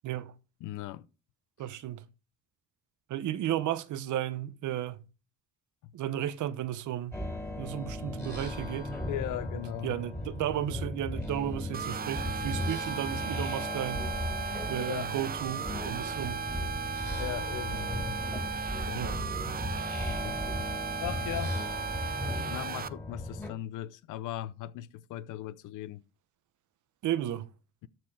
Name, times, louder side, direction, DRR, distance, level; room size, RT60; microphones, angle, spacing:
voice 1, 0.6-1.1 5.8-5.9 9.1-10.0 14.8-15.1 17.2-17.9 18.9-19.3 20.2-20.4 21.0-21.6 22.4-26.0, left 13 dB, 90° left, 0.7 m, -38 dB
voice 2, 1.6-2.0 3.1-5.0 5.9-7.2 7.6-8.9 9.8-14.0 14.7-16.4 18.9-19.3 27.0-27.5, right 12 dB, 75° right, 0.9 m, -34 dB
sound 1, 7.1-23.5, left 1 dB, 10° left, 3.5 m, -36 dB
sound 2, 11.7-22.9, right 7 dB, 30° right, 0.6 m, -36 dB
13.0 x 4.5 x 4.7 m
cardioid pair, 90°, 30 cm